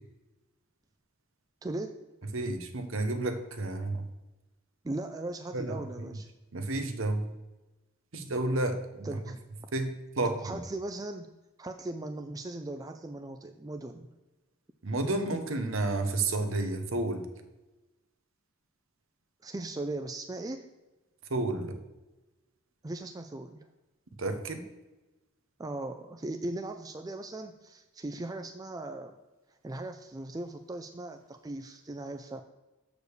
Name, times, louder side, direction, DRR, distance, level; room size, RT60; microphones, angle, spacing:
voice 1, 1.6-2.0 4.8-6.3 9.0-9.4 10.2-11.3 11.6-14.1 19.4-20.7 22.8-23.7 25.6-29.1 29.6-32.4, right 2 dB, 15° right, 6 dB, 0.4 m, -38 dB
voice 2, 2.3-4.1 5.5-6.1 6.5-7.3 8.1-9.1 9.7-10.6 14.8-17.3 21.3-21.8 24.2-24.7, right 2 dB, 65° right, 7 dB, 1.0 m, -31 dB
6.6 x 5.0 x 6.6 m, 1.1 s
head